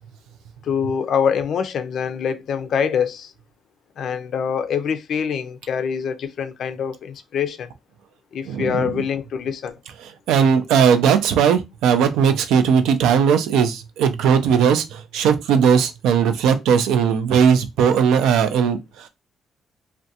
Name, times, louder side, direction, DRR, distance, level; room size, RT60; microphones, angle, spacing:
voice 1, 0.6-3.3 4.0-7.7 8.3-9.8, left 7 dB, 65° left, 0.4 m, -24 dB
voice 2, 8.5-9.0 10.3-19.1, right 7 dB, 90° right, 0.4 m, -18 dB
2.4 x 2.1 x 2.7 m
cardioid pair, 90°, 0 cm